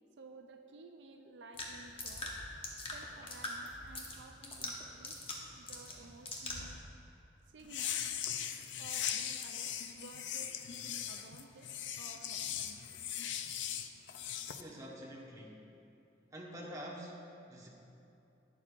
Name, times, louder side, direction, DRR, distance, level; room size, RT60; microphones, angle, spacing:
voice 1, 0.2-2.4 2.9-6.7 7.5-8.0 8.8-13.0, right 3 dB, 75° right, 5 dB, 0.5 m, -55 dB
sound 1, 1.5-6.8, left 2 dB, 30° left, 1.0 m, -43 dB
sound 2, 7.6-14.6, left 9 dB, 85° left, 0.5 m, -39 dB
voice 2, 14.6-15.7 16.3-17.7, equal, 20° right, -4 dB, 1.1 m, -47 dB
11.5 x 9.8 x 2.5 m, 2.8 s
head